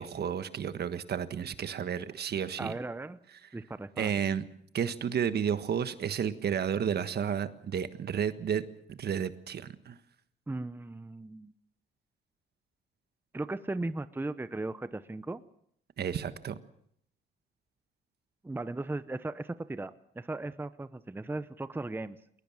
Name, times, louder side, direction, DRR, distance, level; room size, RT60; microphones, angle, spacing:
voice 1, 0.0-2.7 4.0-4.4 4.7-9.9 16.0-16.6, right 8 dB, 55° right, 12 dB, 1.4 m, -32 dB
voice 2, 2.6-3.2 3.5-4.1 10.5-11.5 13.3-15.4 18.4-22.2, right 2 dB, 10° right, 13 dB, 0.8 m, -37 dB
21.0 x 19.5 x 7.2 m, 0.68 s
cardioid pair, 90°, 20 cm